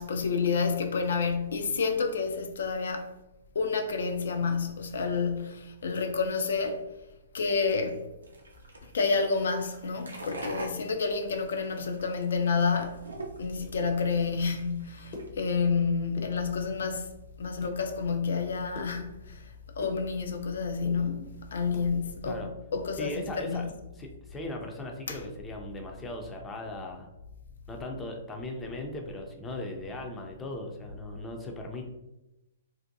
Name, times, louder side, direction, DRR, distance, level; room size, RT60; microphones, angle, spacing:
voice 1, 0.0-3.1 3.5-6.8 7.3-8.1 8.9-13.1 13.4-19.5 19.8-23.6 25.1-25.2, left 5 dB, 70° left, 0.4 m, -29 dB
sound 1, 8.2-15.3, right 1 dB, 90° right, 0.5 m, -43 dB
sound 2, 15.1-16.9 17.3-17.8 18.2-20.5 20.7-21.9 22.3-23.8 24.1-24.2 24.6-24.8 25.2-25.4, left 2 dB, 50° left, 0.7 m, -45 dB
voice 2, 23.0-23.7 24.0-27.1 27.7-31.9, left 1 dB, 15° left, 0.5 m, -38 dB
2.6 x 2.1 x 2.6 m
hypercardioid pair, 120°, 0 cm